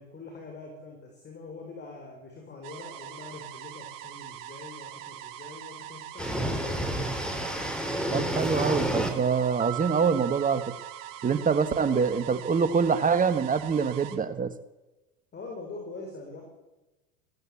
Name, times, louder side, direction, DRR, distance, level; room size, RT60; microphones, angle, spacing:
voice 1, 0.0-6.9 11.8-12.1 15.3-16.4, left 3 dB, 25° left, 2 dB, 6.1 m, -43 dB
sound 1, 2.6-14.2, right 12 dB, 60° right, 3.3 m, -43 dB
sound 2, 6.2-9.1, equal, ahead, 3.9 m, -29 dB
voice 2, 8.1-10.6 11.2-14.5, right 6 dB, 20° right, 12 dB, 1.3 m, -25 dB
sound 3, 9.6-12.1, right 18 dB, 85° right, 1.6 m, -41 dB
21.5 x 16.5 x 8.5 m, 1.1 s
hypercardioid pair, 110°, 41 cm